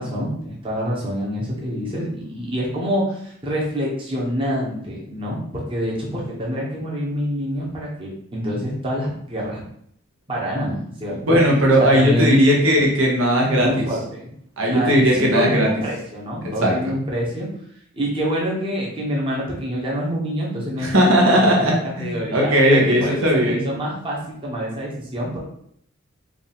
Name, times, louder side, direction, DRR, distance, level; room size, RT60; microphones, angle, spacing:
voice 1, 0.0-9.6 10.3-11.4 11.8-12.5 13.5-14.3 14.7-17.5 18.0-25.4, equal, 25° right, -4 dB, 1.0 m, -26 dB
voice 2, 11.2-13.8 14.6-15.7 16.4-16.8 20.8-23.6, equal, 70° right, -1 dB, 1.0 m, -17 dB
5.0 x 2.5 x 3.5 m, 0.68 s
head